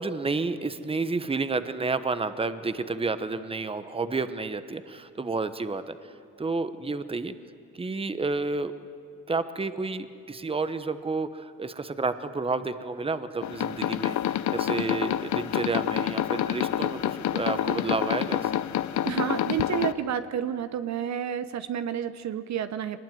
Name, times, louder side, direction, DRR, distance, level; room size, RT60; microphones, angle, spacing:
voice 1, 0.0-6.0 6.4-7.3 7.7-8.7 9.3-18.5, right 3 dB, 20° right, 11 dB, 1.1 m, -30 dB
sound 1, 13.4-19.9, left 11 dB, 70° left, 0.9 m, -28 dB
voice 2, 19.0-23.0, right 9 dB, 65° right, 11 dB, 0.9 m, -30 dB
22.5 x 20.0 x 9.3 m, 2.4 s
cardioid pair, 90°, 30 cm